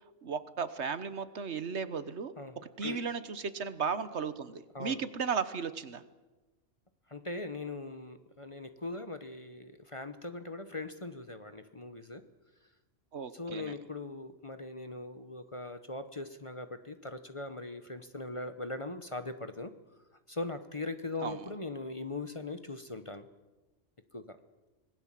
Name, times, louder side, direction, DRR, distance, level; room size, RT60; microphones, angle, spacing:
voice 1, 0.2-2.3 2.8-6.0 13.1-13.7 21.2-21.4, right 6 dB, 65° right, 13 dB, 1.4 m, -35 dB
voice 2, 2.4-3.1 4.7-5.0 7.1-12.2 13.3-19.7 20.3-23.3 24.1-24.4, left 2 dB, 30° left, 9 dB, 1.0 m, -40 dB
25.5 x 20.0 x 7.5 m, 1.2 s
omnidirectional pair, 1.3 m